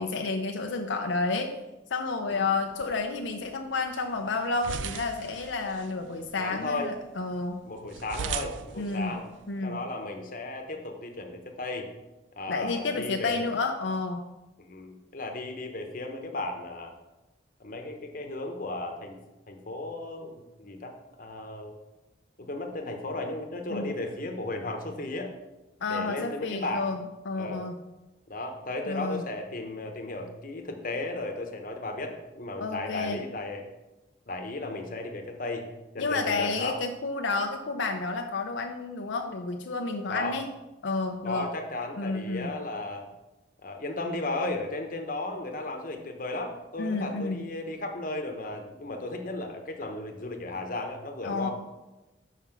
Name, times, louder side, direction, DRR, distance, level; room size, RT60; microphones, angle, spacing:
voice 1, 0.0-1.5 1.9-7.6 8.8-9.1 9.5-9.8 12.5-14.2 23.7-23.9 25.8-27.8 28.9-29.2 32.6-33.2 36.0-40.5 40.8-41.5 42.0-42.5 46.8-47.5 51.2-51.5, left 3 dB, 80° left, 4 dB, 0.6 m, -30 dB
sound 1, 2.6-9.6, right 7 dB, 80° right, 0.4 m, -41 dB
voice 2, 6.4-6.9 7.7-9.2 9.6-11.9 12.4-13.5 14.6-16.9 17.6-19.2 19.5-21.7 22.4-25.3 25.9-26.9 27.3-27.6 28.3-33.6 34.3-35.7 35.9-36.8 40.1-40.4 41.2-43.1 43.6-51.5, left 2 dB, 45° left, 3 dB, 1.0 m, -35 dB
5.8 x 5.8 x 5.9 m, 1.0 s
head